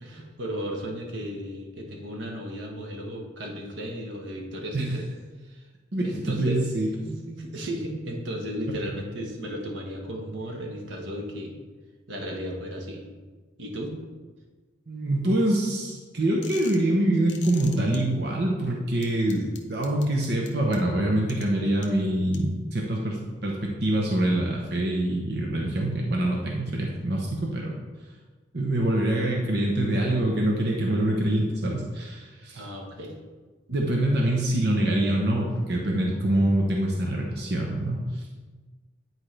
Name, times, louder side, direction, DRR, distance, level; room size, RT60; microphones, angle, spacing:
voice 1, 0.0-5.1 5.4-5.7 6.0-6.7 7.0-11.6 12.1-13.0 13.6-14.0 32.5-33.1, equal, 85° right, 0 dB, 1.3 m, -35 dB
voice 2, 5.9-6.9 14.9-19.4 19.7-27.7 28.5-32.6 33.7-38.1, right 1 dB, 60° right, -1 dB, 0.9 m, -25 dB
sound 1, 16.4-16.9 17.3-18.0 19.0-20.8 21.3-21.4 21.8-21.9 22.3-22.4, left 7 dB, 70° left, 0.9 m, -43 dB
9.9 x 4.5 x 3.3 m, 1.4 s
head